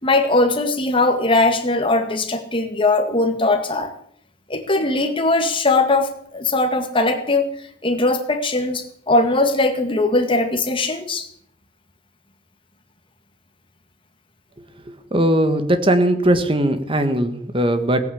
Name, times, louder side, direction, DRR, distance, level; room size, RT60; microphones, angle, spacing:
voice 1, 0.0-3.9 4.5-7.5 7.8-11.3, left 2 dB, 30° left, 5 dB, 2.1 m, -20 dB
voice 2, 15.1-18.0, right 1 dB, 30° right, 8 dB, 1.6 m, -19 dB
18.0 x 9.2 x 8.6 m, 0.67 s
head